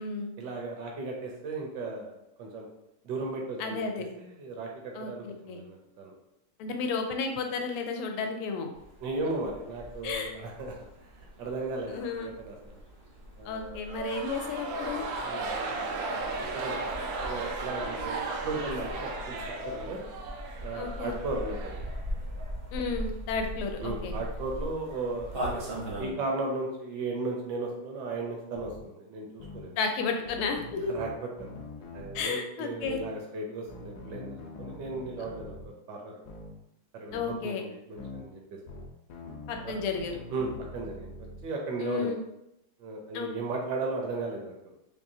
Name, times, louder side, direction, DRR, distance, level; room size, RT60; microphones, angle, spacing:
voice 1, 0.4-2.1 2.4-2.7 3.0-6.1 9.0-10.7 11.4-12.8 13.4-13.8 15.2-16.3 16.5-16.8 17.2-20.0 20.6-21.8 23.8-25.6 26.0-29.8 30.9-31.1 31.4-31.5 31.9-35.6 35.9-36.2 36.9-38.6 39.6-39.7 40.3-41.1 41.4-42.2 42.8-44.5, right 3 dB, 65° right, 0 dB, 1.2 m, -36 dB
voice 2, 3.6-4.1 4.9-5.6 6.6-8.7 9.2-9.3 10.0-10.3 11.9-12.3 13.5-15.0 20.7-21.1 22.7-24.2 29.8-30.9 32.1-33.0 37.1-37.6 39.5-40.2 41.8-42.2 43.1-43.3, left 4 dB, 85° left, 4 dB, 1.5 m, -32 dB
sound 1, 8.7-26.1, equal, 50° right, 0.7 m, -40 dB
sound 2, 13.8-22.3, right 3 dB, 85° right, 1.5 m, -35 dB
sound 3, 28.5-28.8 29.4-29.7 30.3-32.2 32.8-33.1 33.7-35.7 36.2-36.5 37.1-37.4 38.0-38.2 38.7-41.4, left 2 dB, 65° left, 1.0 m, -44 dB
4.7 x 2.7 x 2.7 m, 0.84 s
omnidirectional pair, 2.4 m